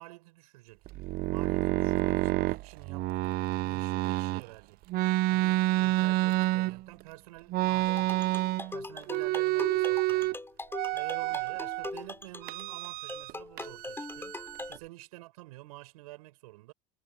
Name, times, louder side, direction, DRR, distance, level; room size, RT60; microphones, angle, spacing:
voice 1, 0.0-4.9 5.3-8.4 8.7-10.4 10.9-14.4 14.7-16.7, right 20 dB, 75° right, 6.9 m, -49 dB
sound 1, 0.9-4.4 4.9-7.0 7.5-8.8 9.0-10.4 10.7-11.9 12.4-13.3 13.6-14.8, right 18 dB, 50° right, 0.7 m, -29 dB
sound 2, 7.9-14.8, left 2 dB, 10° left, 4.1 m, -41 dB
hypercardioid pair, 70°, 19 cm